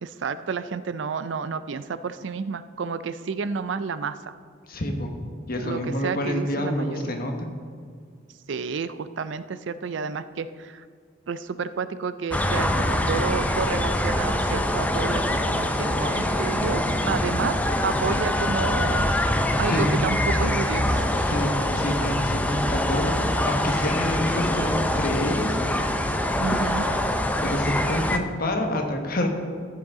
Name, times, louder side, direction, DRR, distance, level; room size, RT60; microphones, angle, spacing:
voice 1, 0.0-4.3 5.6-7.0 8.5-10.9 11.3-19.1 19.6-21.1 26.4-26.9, right 5 dB, 70° right, 13 dB, 0.4 m, -30 dB
voice 2, 4.7-5.1 5.5-7.3 19.7-19.9 21.2-25.6 27.4-29.3, left 1 dB, 50° left, 3 dB, 1.3 m, -27 dB
sound 1, 12.3-28.2, left 1 dB, 10° left, 0.5 m, -24 dB
14.5 x 7.5 x 3.7 m, 2.1 s
head